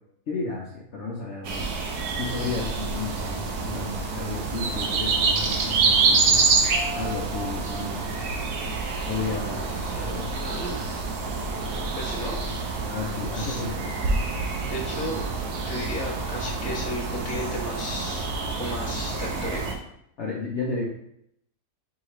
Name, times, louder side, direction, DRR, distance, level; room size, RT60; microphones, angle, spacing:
voice 1, 0.3-1.7 2.2-6.5 6.9-8.1 9.1-9.7 10.0-10.3 12.9-13.9 20.2-20.8, left 3 dB, 60° left, -3 dB, 0.8 m, -32 dB
sound 1, 1.4-19.7, right 4 dB, 75° right, 1.2 m, -27 dB
voice 2, 9.3-10.9 12.0-12.7 13.3-13.7 14.6-15.2 15.7-18.3 18.5-19.6, left 1 dB, 10° left, -4 dB, 0.5 m, -34 dB
4.8 x 3.1 x 3.0 m, 0.74 s
omnidirectional pair, 1.8 m